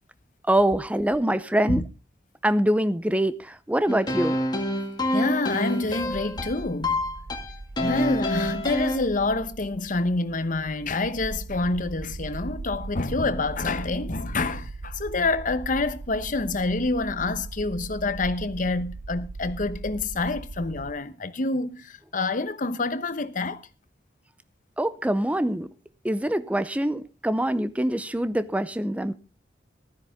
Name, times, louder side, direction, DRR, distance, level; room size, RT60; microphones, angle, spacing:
voice 1, 0.5-1.8 2.4-4.4 24.8-25.7 26.0-29.1, right 1 dB, 10° right, 0.6 m, -24 dB
sound 1, 3.9-9.0, left 1 dB, 25° left, 1.9 m, -27 dB
voice 2, 5.1-7.0 7.8-23.6, left 3 dB, 45° left, 0.9 m, -27 dB
sound 2, 6.0-20.9, right 3 dB, 50° right, 0.6 m, -39 dB
14.5 x 13.0 x 3.6 m
head